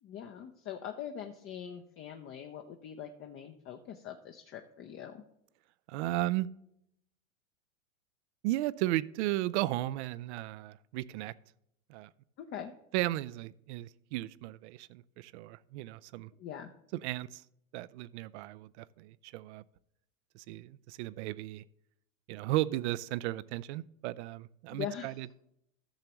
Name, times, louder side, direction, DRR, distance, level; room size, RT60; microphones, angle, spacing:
voice 1, 0.0-5.2 12.5-12.7 16.4-16.7 24.7-25.2, left 9 dB, 30° left, 0.7 m, -42 dB
voice 2, 5.9-6.5 8.4-11.3 11.9-12.1 12.9-16.3 17.0-17.4 17.7-19.6 20.3-21.6 22.3-25.4, right 16 dB, 55° right, 0.5 m, -35 dB
14.0 x 6.7 x 3.0 m
hypercardioid pair, 100°, 40 cm